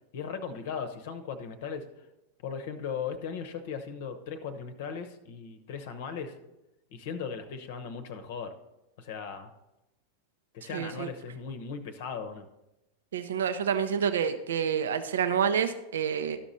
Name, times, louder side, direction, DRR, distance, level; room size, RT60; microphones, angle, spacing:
voice 1, 0.1-1.9 2.4-6.4 6.9-8.5 9.0-9.5 10.5-12.5, left 6 dB, 50° left, 9 dB, 0.8 m, -37 dB
voice 2, 10.6-11.1 13.1-16.4, right 7 dB, 65° right, 10 dB, 0.5 m, -28 dB
12.5 x 6.0 x 4.1 m, 0.93 s
figure-of-eight pair, 90°, 0 cm